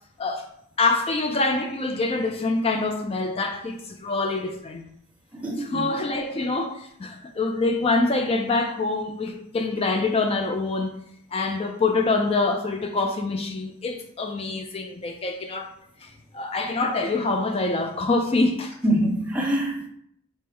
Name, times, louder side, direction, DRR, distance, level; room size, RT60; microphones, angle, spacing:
voice 1, 0.8-4.8 5.6-10.9 11.3-15.7 16.0-18.7, left 3 dB, 25° left, 0.3 m, -25 dB
voice 2, 5.4-5.8 18.8-19.9, right 1 dB, 5° right, 0.9 m, -24 dB
5.4 x 2.1 x 4.4 m
head